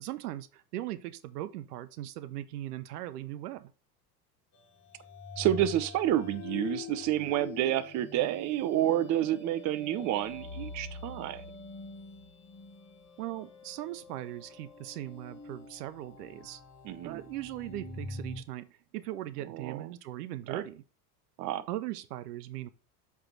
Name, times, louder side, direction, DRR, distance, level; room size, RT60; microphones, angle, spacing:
voice 1, 0.0-3.7 13.2-16.6 17.0-20.8 21.7-22.7, right 14 dB, 65° right, 0.8 m, -39 dB
sound 1, 4.5-18.4, left 3 dB, 30° left, 2.1 m, -45 dB
voice 2, 5.4-11.4 16.8-17.2 19.5-19.8 20.5-20.6 21.4-21.6, right 12 dB, 35° right, 0.7 m, -29 dB
7.8 x 3.5 x 5.8 m
hypercardioid pair, 85°, 49 cm